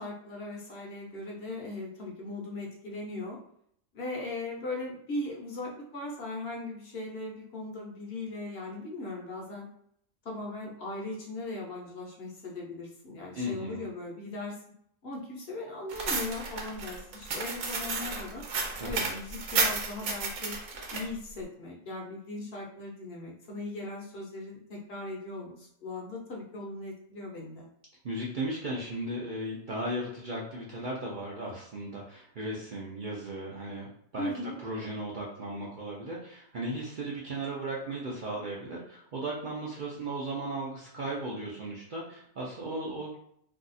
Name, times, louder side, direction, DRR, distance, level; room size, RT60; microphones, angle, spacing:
voice 1, 0.0-3.4 3.9-9.7 10.2-14.6 15.0-18.4 18.8-20.6 20.9-27.7 34.2-34.6, left 2 dB, 55° left, -2 dB, 0.9 m, -38 dB
voice 2, 13.3-13.9 18.8-19.1 28.0-33.9 34.1-43.2, right 1 dB, 55° right, -4 dB, 0.6 m, -36 dB
sound 1, 15.9-21.0, right 4 dB, 70° right, 1.0 m, -32 dB
2.7 x 2.3 x 3.9 m, 0.69 s
omnidirectional pair, 1.4 m